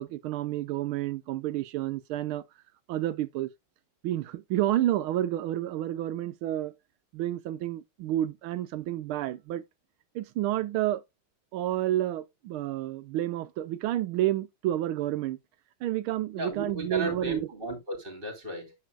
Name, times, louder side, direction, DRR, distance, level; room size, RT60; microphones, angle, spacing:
voice 1, 0.0-2.4 2.9-3.5 4.0-6.7 7.1-9.6 10.1-11.0 11.5-15.4 15.8-17.5, right 13 dB, 85° right, 1.5 m, -30 dB
voice 2, 16.4-18.7, right 1 dB, 25° right, 2.7 m, -35 dB
9.2 x 6.6 x 2.4 m
omnidirectional pair, 2.3 m